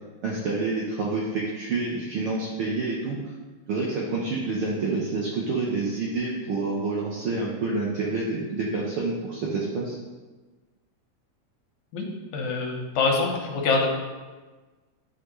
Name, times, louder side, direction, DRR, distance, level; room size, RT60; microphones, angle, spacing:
voice 1, 0.2-3.2 3.7-10.0, right 3 dB, 75° right, -4 dB, 1.3 m, -28 dB
voice 2, 12.3-13.9, left 4 dB, 80° left, 0 dB, 2.4 m, -25 dB
10.0 x 4.8 x 3.1 m, 1.3 s
omnidirectional pair, 3.4 m